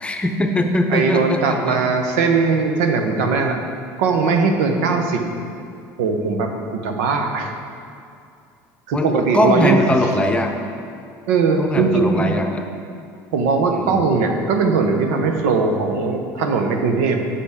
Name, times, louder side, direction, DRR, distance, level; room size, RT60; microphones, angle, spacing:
voice 1, 0.0-1.8 8.9-10.6 11.6-12.6 13.7-14.1, left 1 dB, 15° left, 4 dB, 0.8 m, -21 dB
voice 2, 0.9-3.6 4.0-5.2 6.0-7.6 8.9-9.8 11.3-12.3 13.3-17.2, right 4 dB, 85° right, 4 dB, 0.9 m, -19 dB
9.4 x 7.0 x 3.6 m, 2.4 s
supercardioid pair, 95°, 8 cm